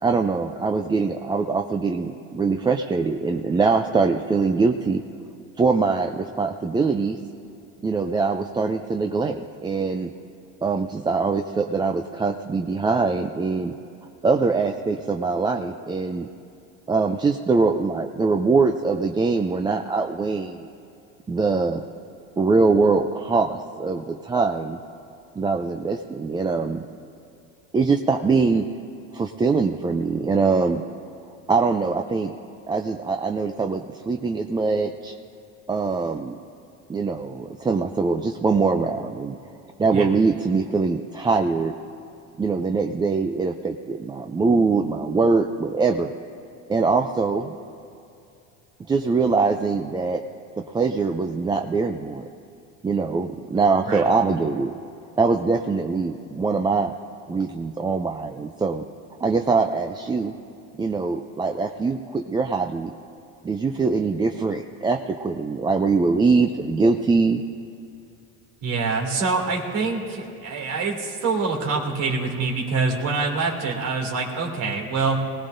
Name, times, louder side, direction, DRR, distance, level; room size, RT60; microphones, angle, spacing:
voice 1, 0.0-5.0 5.6-7.2 7.8-10.1 10.6-13.7 14.2-16.3 16.9-20.6 21.3-21.8 22.4-24.8 25.4-26.8 27.7-28.7 29.1-30.8 31.5-32.3 32.7-35.1 35.7-36.4 36.9-39.4 39.8-41.7 42.4-46.1 46.7-47.5 48.9-50.2 50.7-52.3 52.8-54.7 55.2-56.9 57.3-58.8 59.2-60.3 60.8-62.9 63.4-67.4, right 4 dB, 15° right, 5 dB, 0.4 m, -23 dB
voice 2, 68.6-75.2, right 4 dB, 65° right, -1 dB, 2.7 m, -25 dB
21.0 x 17.5 x 2.6 m, 2.6 s
supercardioid pair, 105°, 36 cm